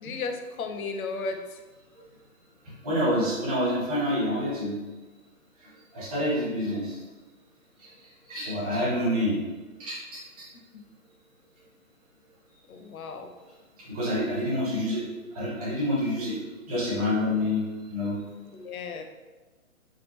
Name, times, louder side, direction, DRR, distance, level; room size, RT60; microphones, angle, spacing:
voice 1, 0.0-1.4 8.5-8.8 12.7-13.3 18.5-19.0, left 4 dB, 80° left, 6 dB, 0.6 m, -35 dB
voice 2, 2.8-4.8 5.9-7.0 8.3-9.4 9.8-10.2 13.9-15.0 15.3-16.4 16.7-18.2, left 1 dB, 25° right, -8 dB, 1.2 m, -27 dB
3.5 x 2.3 x 3.0 m, 1.3 s
hypercardioid pair, 165°, 42 cm